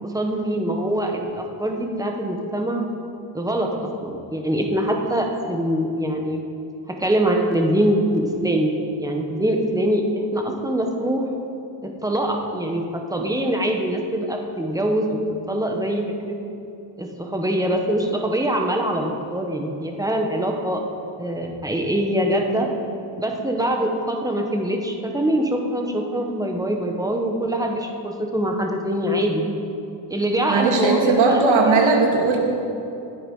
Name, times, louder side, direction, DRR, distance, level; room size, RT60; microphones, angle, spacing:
voice 1, 0.0-2.8 3.3-6.4 7.0-8.7 9.0-10.0 10.3-11.2 11.8-15.2 15.5-16.3 17.0-20.8 21.2-22.7 23.2-29.4 30.1-31.8, right 1 dB, 5° right, 2 dB, 1.5 m, -23 dB
voice 2, 30.5-32.4, right 4 dB, 85° right, 0 dB, 2.5 m, -18 dB
19.0 x 8.4 x 5.6 m, 2.8 s
cardioid pair, 135°, 47 cm